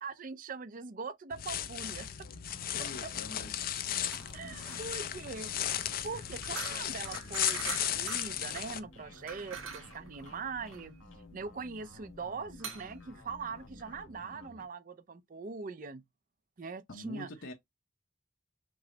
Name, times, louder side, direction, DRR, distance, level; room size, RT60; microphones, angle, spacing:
voice 1, 0.0-2.3 3.0-3.1 4.3-10.9 11.3-16.0 16.6-17.3, right 4 dB, 40° right, 0.4 m, -42 dB
sound 1, 1.3-8.8, left 10 dB, 45° left, 0.4 m, -35 dB
sound 2, 2.2-14.7, left 2 dB, 90° left, 1.6 m, -54 dB
voice 2, 2.7-3.7 16.9-17.5, left 2 dB, 70° left, 0.8 m, -45 dB
sound 3, 4.0-14.0, right 6 dB, 85° right, 1.6 m, -45 dB
6.0 x 2.0 x 3.8 m
head